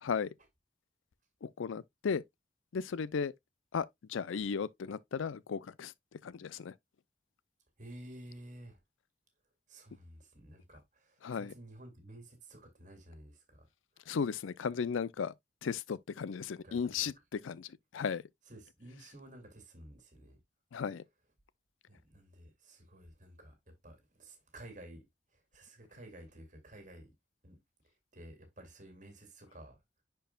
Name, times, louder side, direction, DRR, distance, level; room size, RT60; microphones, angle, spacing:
voice 1, 1.4-2.2 2.7-3.3 3.7-5.9 6.2-6.7 11.2-11.5 14.1-15.3 15.6-18.2 20.7-21.0, left 6 dB, 85° left, 0.4 m, -35 dB
voice 2, 7.8-8.8 9.7-13.7 16.6-17.1 18.5-20.4 21.9-23.5 23.8-25.0 25.5-27.1 27.4-27.6 28.1-29.8, right 1 dB, 40° right, 2.2 m, -52 dB
10.5 x 4.6 x 2.2 m
head